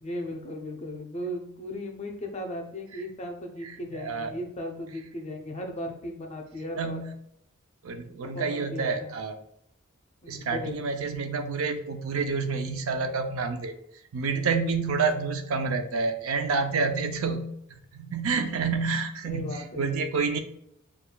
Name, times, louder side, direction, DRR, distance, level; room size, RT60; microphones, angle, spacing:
voice 1, 0.0-7.0 8.3-9.1 10.2-10.8 19.2-19.9, left 1 dB, 30° left, 2 dB, 0.6 m, -36 dB
voice 2, 3.6-4.3 6.8-7.1 7.8-9.4 10.3-13.7 14.1-20.4, right 4 dB, 75° right, 7 dB, 0.5 m, -29 dB
6.8 x 2.4 x 2.2 m, 0.73 s
head